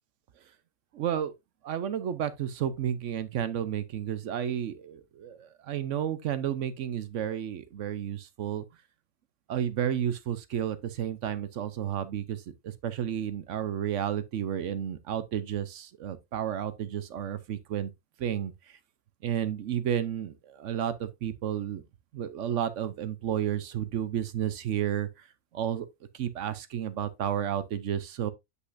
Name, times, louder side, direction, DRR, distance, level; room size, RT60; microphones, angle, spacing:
voice 1, 0.9-1.3 1.6-8.6 9.5-17.9 18.2-18.8 19.2-21.8 22.1-25.3 25.5-25.9 26.1-28.3, right 9 dB, 65° right, 0.9 m, -32 dB
8.1 x 5.5 x 2.5 m
omnidirectional pair, 1.5 m